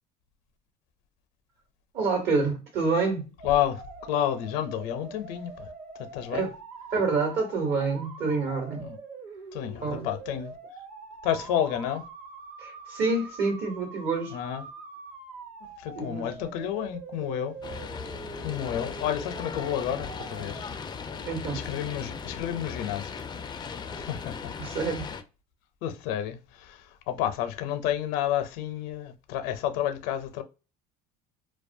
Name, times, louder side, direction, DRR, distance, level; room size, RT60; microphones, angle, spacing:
voice 1, 1.9-3.3 6.3-6.5 6.9-8.9 9.8-10.1 12.6-14.4 15.9-16.3 21.2-21.6 24.6-25.1, right 4 dB, 60° right, 1.2 m, -27 dB
voice 2, 3.4-3.8 4.1-5.7 6.0-6.5 8.8-9.0 9.5-10.6 11.2-12.0 14.3-14.6 15.8-17.6 18.4-20.7 21.5-23.1 23.9-24.5 25.8-30.4, left 11 dB, 75° left, 0.5 m, -30 dB
sound 1, 3.4-20.6, right 4 dB, 40° right, 0.8 m, -44 dB
sound 2, 17.6-25.2, left 5 dB, 20° left, 0.3 m, -38 dB
2.2 x 2.2 x 2.6 m
supercardioid pair, 80°, 20 cm